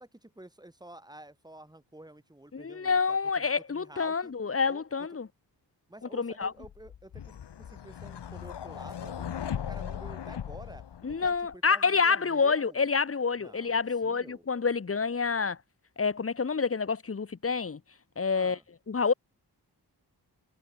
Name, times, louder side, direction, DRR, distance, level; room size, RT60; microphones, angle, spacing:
voice 1, 0.0-4.3 4.7-4.8 5.1-5.2 5.9-12.9 13.4-14.4 18.3-18.6, right 1 dB, 10° right, 7.3 m, -50 dB
voice 2, 2.5-5.3 6.1-6.5 11.0-15.6 16.0-17.8 18.2-18.6 18.9-19.1, left 5 dB, 35° left, 1.9 m, -28 dB
sound 1, 6.6-11.5, left 9 dB, 90° left, 1.9 m, -38 dB
wide cardioid pair, 170°, 40 cm